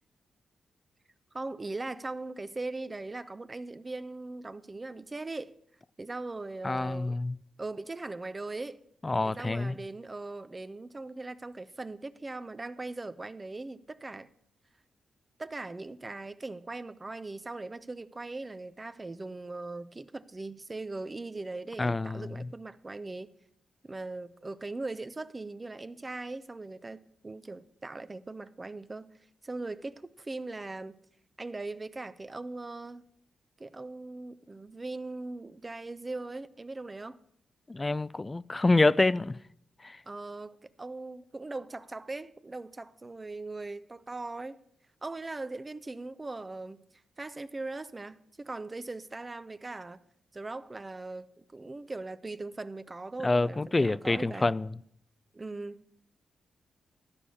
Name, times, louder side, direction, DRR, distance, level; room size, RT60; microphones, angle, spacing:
voice 1, 1.3-5.5 6.0-7.2 7.6-8.8 9.2-14.3 15.4-23.3 23.8-29.1 29.4-31.0 31.4-33.1 33.6-37.2 40.1-44.6 45.0-46.9 47.2-50.0 50.3-54.5 55.3-55.8, right 2 dB, 30° right, 0.6 m, -40 dB
voice 2, 6.6-7.4 9.0-9.8 21.8-22.5 37.7-39.4 39.8-40.0 53.2-54.8, left 2 dB, 30° left, 0.4 m, -27 dB
12.0 x 4.8 x 8.4 m
hypercardioid pair, 40°, 0 cm